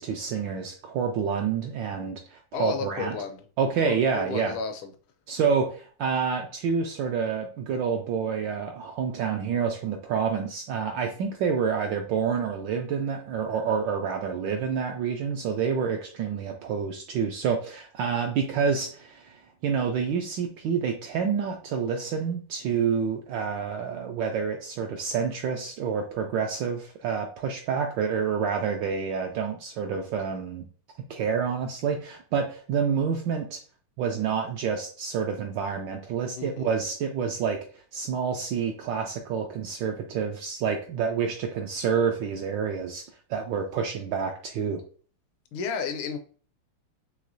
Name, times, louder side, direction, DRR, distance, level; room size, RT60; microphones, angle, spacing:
voice 1, 0.0-3.2 3.6-4.5 5.3-30.6 31.1-33.6 34.0-37.6 37.9-44.8, right 6 dB, 75° right, 1.1 m, -28 dB
voice 2, 2.5-3.5 3.8-4.9 36.4-36.7 45.5-46.2, left 5 dB, 75° left, 1.4 m, -32 dB
4.8 x 3.2 x 2.6 m
omnidirectional pair, 2.4 m